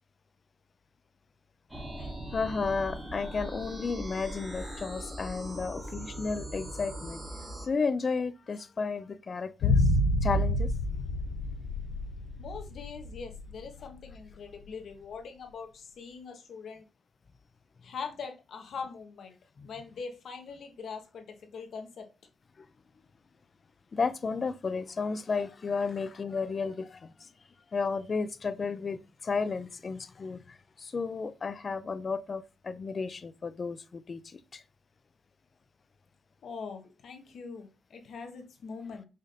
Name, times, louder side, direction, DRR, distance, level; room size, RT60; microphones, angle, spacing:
sound 1, 1.7-7.7, right 1 dB, 10° right, 1.0 m, -40 dB
voice 1, 2.3-7.2 7.7-9.8 10.2-10.7 19.6-19.7 23.9-27.1 27.7-34.6, left 4 dB, 30° left, 0.3 m, -33 dB
sound 2, 9.6-13.9 14.1-14.2, left 1 dB, 80° left, 0.7 m, -28 dB
voice 2, 12.4-16.8 17.8-19.4 19.6-22.1 36.4-39.1, left 5 dB, 55° left, 0.9 m, -42 dB
5.0 x 2.6 x 4.1 m
cardioid pair, 140°, 0 cm